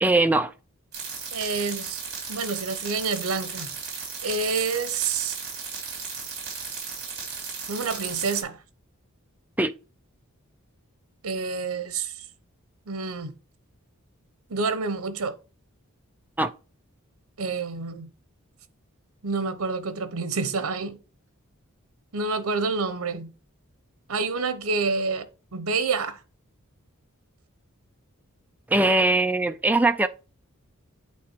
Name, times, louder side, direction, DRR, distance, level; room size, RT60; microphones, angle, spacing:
voice 1, 0.0-0.5 9.6-9.7 16.4-16.5 28.7-30.1, right 2 dB, 10° right, 0.4 m, -21 dB
sound 1, 0.9-8.4, right 5 dB, 50° right, 3.3 m, -35 dB
voice 2, 1.3-2.0 2.3-3.7 4.2-5.4 7.7-8.6 11.2-12.1 12.9-13.3 14.5-15.3 17.4-18.1 19.2-21.0 22.1-23.3 24.1-25.3 25.5-26.2, right 4 dB, 85° right, 0.9 m, -28 dB
8.6 x 3.4 x 4.5 m
head